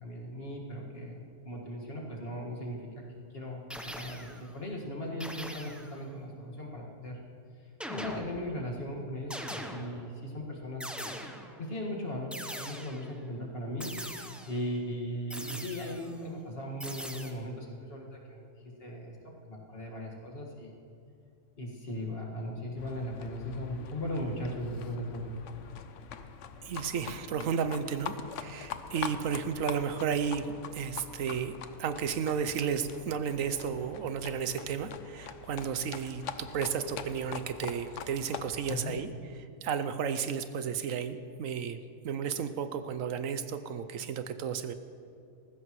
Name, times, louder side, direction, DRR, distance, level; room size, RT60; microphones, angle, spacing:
voice 1, 0.0-2.8 3.3-7.2 7.6-11.2 11.6-20.7 21.6-25.4 38.7-39.0, equal, 45° left, -2 dB, 2.1 m, -38 dB
sound 1, 3.7-4.5 5.2-6.0 7.8-8.7 9.3-10.2 10.8-11.7 12.3-13.2 13.8-14.7 15.3-16.1 16.8-17.3, equal, ahead, 0.6 m, -41 dB
Livestock farm animals working animals, 22.8-38.9, left 7 dB, 65° left, 1.0 m, -44 dB
voice 2, 26.6-31.5 31.8-39.1 39.6-41.8 42.0-44.7, right 7 dB, 75° right, 10 dB, 1.0 m, -33 dB
19.5 x 15.0 x 3.1 m, 2.4 s
omnidirectional pair, 1.4 m